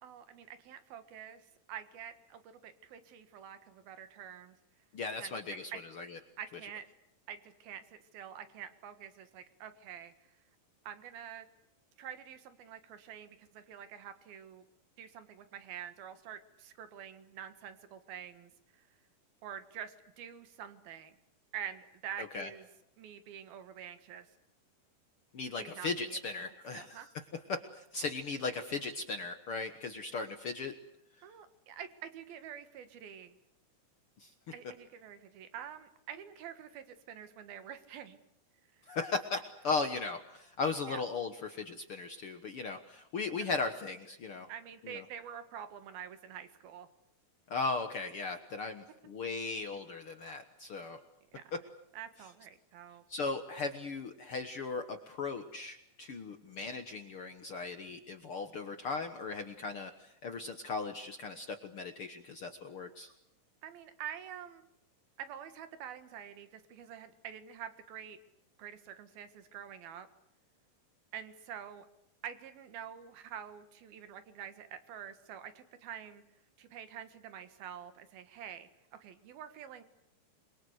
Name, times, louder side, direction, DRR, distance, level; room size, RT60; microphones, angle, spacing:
voice 1, 0.0-4.6 5.2-5.4 5.7-5.8 6.4-6.9 7.3-10.1 10.9-11.5 12.0-14.7 15.0-18.9 19.4-21.2 21.5-22.7 23.0-24.3 25.6-26.2 26.7-27.1 31.2-33.4 34.5-38.2 38.8-39.0 40.9-41.0 44.5-46.9 51.3-51.5 51.9-53.0 63.6-64.6 65.2-68.2 68.6-70.1 71.1-71.9 72.2-76.2 76.6-78.7 79.0-79.8, right 9 dB, 90° right, 10 dB, 3.6 m, -47 dB
voice 2, 4.9-6.2 22.2-22.5 25.3-27.0 27.5-30.7 34.2-34.3 38.9-44.5 44.8-45.0 47.5-51.0 51.5-51.6 53.1-63.1, left 4 dB, 55° left, 7 dB, 1.5 m, -37 dB
27.5 x 23.0 x 8.1 m, 0.79 s
omnidirectional pair, 4.1 m